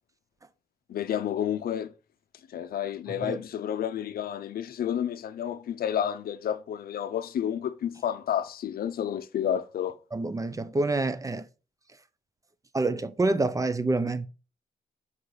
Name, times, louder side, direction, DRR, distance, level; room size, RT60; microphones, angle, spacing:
voice 1, 0.9-1.9 2.5-10.0, left 9 dB, 70° left, 0.6 m, -30 dB
voice 2, 10.1-11.5 12.7-14.3, right 2 dB, 20° right, 0.6 m, -27 dB
5.6 x 3.9 x 4.7 m
cardioid pair, 100°, 16 cm